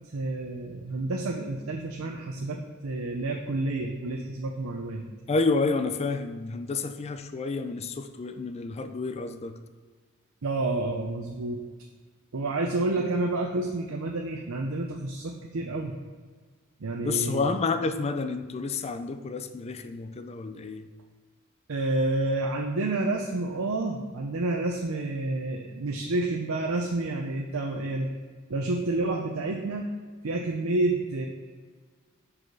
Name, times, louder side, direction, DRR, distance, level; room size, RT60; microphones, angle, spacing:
voice 1, 0.1-5.0 10.4-11.6 12.3-16.0 16.8-17.5 21.7-28.1 28.5-29.9 30.2-31.3, right 2 dB, 80° right, 1 dB, 0.6 m, -29 dB
voice 2, 5.3-9.6 17.0-20.9, left 4 dB, 30° left, 9 dB, 0.4 m, -29 dB
4.9 x 4.8 x 6.0 m, 1.5 s
head